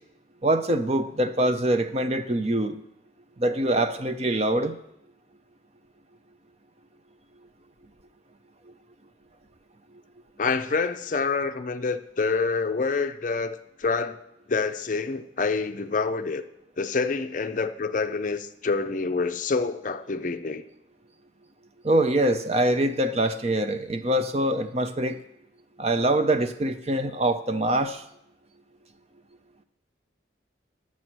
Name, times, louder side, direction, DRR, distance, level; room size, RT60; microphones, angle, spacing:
voice 1, 0.4-2.7 3.4-4.8 21.8-25.2 25.8-28.0, right 1 dB, 35° right, 0.6 m, -24 dB
voice 2, 10.4-14.2 14.5-16.4 16.8-20.6, left 4 dB, 40° left, 0.5 m, -27 dB
11.0 x 7.4 x 6.1 m
head